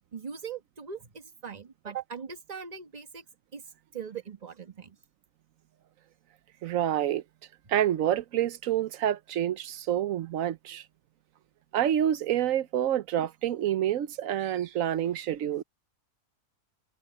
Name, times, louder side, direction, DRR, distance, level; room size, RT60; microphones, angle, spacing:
voice 1, 0.1-3.2 3.5-3.6 3.9-5.0, right 7 dB, 25° right, 1.4 m, -40 dB
voice 2, 6.6-7.2 7.7-10.8 11.7-15.6, right 11 dB, 65° right, 1.1 m, -28 dB
omnidirectional pair, 1.6 m